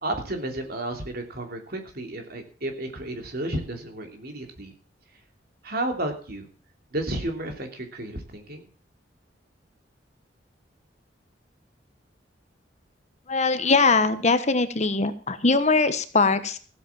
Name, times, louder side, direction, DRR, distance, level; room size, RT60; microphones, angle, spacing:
voice 1, 0.0-4.7 5.6-6.5 6.9-8.7, right 1 dB, 55° right, 4 dB, 3.1 m, -32 dB
voice 2, 13.3-16.6, left 3 dB, 40° left, 11 dB, 1.2 m, -21 dB
15.5 x 8.4 x 7.3 m, 0.39 s
head